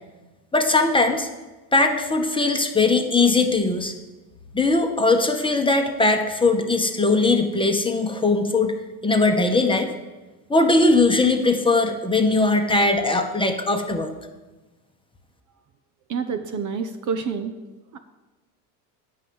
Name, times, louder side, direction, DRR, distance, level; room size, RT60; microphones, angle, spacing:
voice 1, 0.5-1.3 1.7-3.9 4.5-8.7 9.0-9.9 10.5-14.1, left 3 dB, 10° left, 4 dB, 1.1 m, -20 dB
voice 2, 16.1-17.5 17.9-18.0, right 5 dB, 35° right, 8 dB, 0.8 m, -28 dB
8.8 x 5.5 x 7.6 m, 1.2 s
hypercardioid pair, 90°, 50 cm